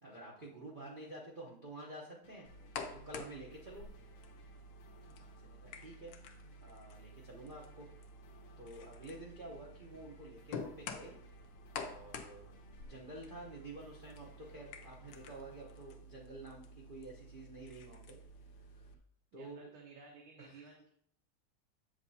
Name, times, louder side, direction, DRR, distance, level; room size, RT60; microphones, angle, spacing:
voice 1, 0.0-3.9 5.2-6.1 6.6-7.9 8.6-11.2 11.8-18.9 19.3-19.7 20.4-20.6, right 2 dB, 55° right, -3 dB, 0.5 m, -50 dB
sound 1, 2.2-16.0, left 3 dB, 85° left, 1.9 m, -64 dB
sound 2, 2.4-18.9, left 4 dB, 70° left, 1.2 m, -50 dB
voice 2, 19.3-20.9, right 4 dB, 85° right, -1 dB, 1.9 m, -55 dB
7.6 x 6.6 x 2.7 m, 0.68 s
omnidirectional pair, 2.3 m